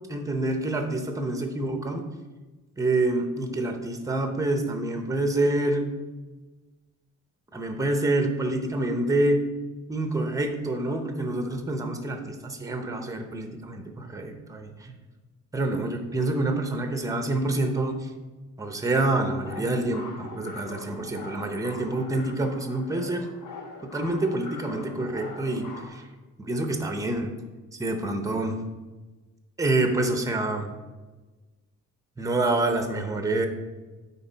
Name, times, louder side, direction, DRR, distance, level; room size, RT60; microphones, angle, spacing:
voice 1, 0.1-2.1 2.8-5.9 7.5-9.4 9.9-15.0 15.5-18.1 18.6-23.3 23.8-26.0 26.4-27.3 27.8-28.6 29.6-30.7 32.2-33.5, right 2 dB, 10° right, 5 dB, 0.6 m, -27 dB
sound 1, 19.4-25.9, left 3 dB, 80° left, 1.3 m, -42 dB
9.7 x 4.1 x 4.0 m, 1.2 s
wide cardioid pair, 175°, 31 cm